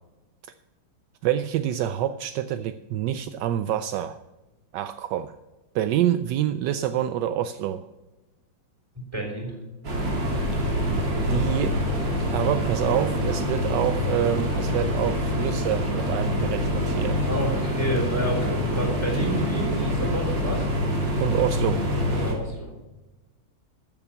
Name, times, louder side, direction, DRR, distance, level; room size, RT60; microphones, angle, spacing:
voice 1, 1.2-4.2 4.7-5.4 5.7-7.9 10.5-10.6 11.3-11.8 12.3-17.2 21.2-21.8, right 11 dB, 75° right, 10 dB, 1.0 m, -27 dB
voice 2, 9.1-9.6 17.2-20.7 22.1-22.7, equal, 15° right, 0 dB, 3.6 m, -29 dB
sound 1, 9.8-22.3, equal, 60° right, 3.1 m, -25 dB
14.0 x 7.2 x 5.7 m, 1.1 s
omnidirectional pair, 2.3 m